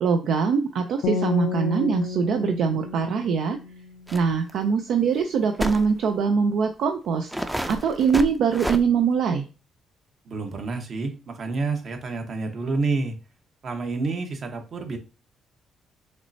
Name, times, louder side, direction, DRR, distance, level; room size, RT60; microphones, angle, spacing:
voice 1, 0.0-3.6 4.1-9.5, right 6 dB, 75° right, 5 dB, 0.5 m, -23 dB
sound 1, 1.0-4.2, left 5 dB, 90° left, 0.5 m, -31 dB
sound 2, 4.1-4.2 4.5-4.6 5.6-5.9 6.6-6.7 7.3-8.8, equal, 5° right, 0.5 m, -29 dB
voice 2, 10.3-13.2 13.6-15.0, right 3 dB, 55° right, 4 dB, 1.1 m, -28 dB
5.9 x 3.2 x 2.7 m, 0.32 s
cardioid pair, 90°, 0 cm